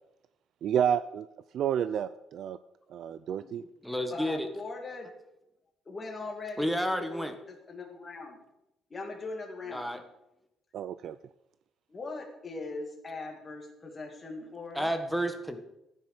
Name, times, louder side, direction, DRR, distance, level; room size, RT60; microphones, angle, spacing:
voice 1, 0.6-1.3 1.5-2.6 2.9-3.6 10.7-11.2, right 9 dB, 55° right, 14 dB, 0.4 m, -30 dB
voice 2, 3.6-4.5 6.6-7.3 9.7-10.0 14.7-15.6, equal, ahead, 7 dB, 1.3 m, -31 dB
voice 3, 4.1-5.1 5.9-8.4 8.9-9.8 11.9-14.9, left 3 dB, 20° left, 1 dB, 2.6 m, -40 dB
14.5 x 9.9 x 6.8 m, 0.88 s
cardioid pair, 175°, 0 cm